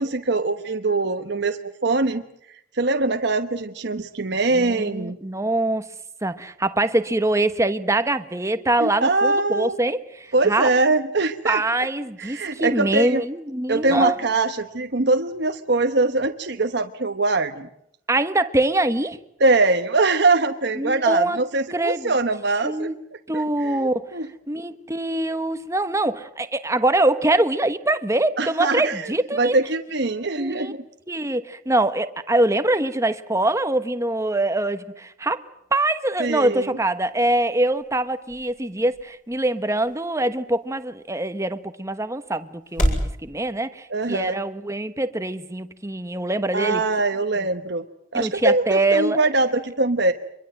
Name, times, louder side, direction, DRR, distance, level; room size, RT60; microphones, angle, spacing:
voice 1, 0.0-2.2 2.7-5.2 8.8-9.8 10.3-11.6 12.2-13.2 13.7-17.7 19.4-22.9 23.3-24.3 28.4-30.8 36.2-36.7 43.9-44.4 46.5-47.8 48.1-50.1, right 3 dB, 60° right, 1.1 m, -22 dB
voice 2, 4.5-5.9 6.2-10.7 11.4-14.1 18.1-19.2 20.8-21.4 21.7-22.1 22.6-23.0 23.3-24.1 24.5-29.6 30.4-30.7 31.1-35.5 35.7-46.8 47.4-47.5 48.1-49.2, right 2 dB, 15° right, 1.1 m, -24 dB
sound 1, 36.9-43.1, equal, 40° left, 7.3 m, -32 dB
25.0 x 22.5 x 7.8 m
head